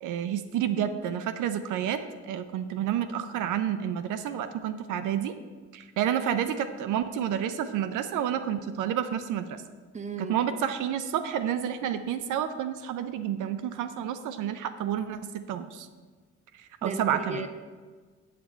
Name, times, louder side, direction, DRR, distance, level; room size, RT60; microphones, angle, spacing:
voice 1, 0.0-2.0 2.3-5.3 5.7-9.6 10.2-15.9 16.8-17.5, right 9 dB, 85° right, 10 dB, 0.6 m, -29 dB
voice 2, 9.9-10.4 16.8-17.5, right 3 dB, 25° right, 8 dB, 0.9 m, -35 dB
8.5 x 7.4 x 4.4 m, 1.5 s
cardioid pair, 90°, 30 cm